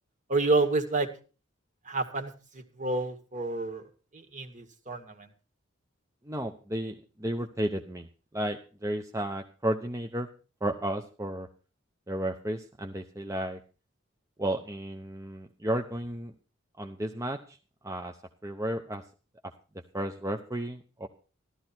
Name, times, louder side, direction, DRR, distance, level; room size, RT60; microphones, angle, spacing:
voice 1, 0.3-1.1 1.9-2.3 2.8-3.9 4.1-5.3, right 3 dB, 40° right, 8 dB, 2.1 m, -29 dB
voice 2, 6.2-8.1 8.3-10.3 10.6-11.5 12.1-13.6 14.4-16.3 16.8-17.6 17.8-18.2 18.4-19.0 19.9-21.1, right 1 dB, 15° right, 4 dB, 0.8 m, -33 dB
14.5 x 12.5 x 4.4 m, 0.35 s
head